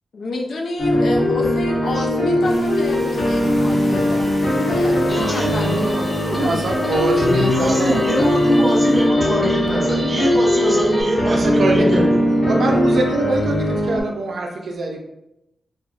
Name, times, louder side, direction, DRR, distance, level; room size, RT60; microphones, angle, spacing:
voice 1, 0.1-4.2 4.6-6.6, left 2 dB, 75° left, 0 dB, 0.5 m, -28 dB
sound 1, 0.8-14.0, left 1 dB, 55° left, 1.0 m, -19 dB
voice 2, 2.1-2.4 6.3-8.0 11.2-11.9 12.5-15.0, right 2 dB, 65° right, 2 dB, 0.3 m, -23 dB
sound 2, 2.4-9.1, equal, 35° left, 1.1 m, -38 dB
Guitar, 5.1-11.0, equal, 5° left, 0.4 m, -29 dB
voice 3, 5.1-5.8 6.2-6.6 7.1-12.5, right 1 dB, 30° right, -5 dB, 0.9 m, -23 dB
3.5 x 2.1 x 2.3 m, 0.87 s
wide cardioid pair, 165°, 0 cm